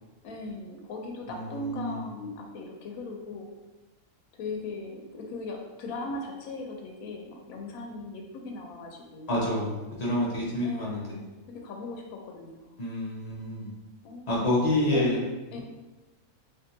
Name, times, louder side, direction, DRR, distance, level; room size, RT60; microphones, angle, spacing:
voice 1, 0.2-3.5 4.3-9.4 10.6-12.8 14.0-14.5 14.9-15.2 15.5-15.6, left 2 dB, 90° left, 1 dB, 1.0 m, -38 dB
voice 2, 1.3-2.0 9.3-11.2 12.8-13.7 14.3-15.2, left 1 dB, 45° left, -5 dB, 0.5 m, -28 dB
3.5 x 2.4 x 2.6 m, 1.2 s
omnidirectional pair, 1.5 m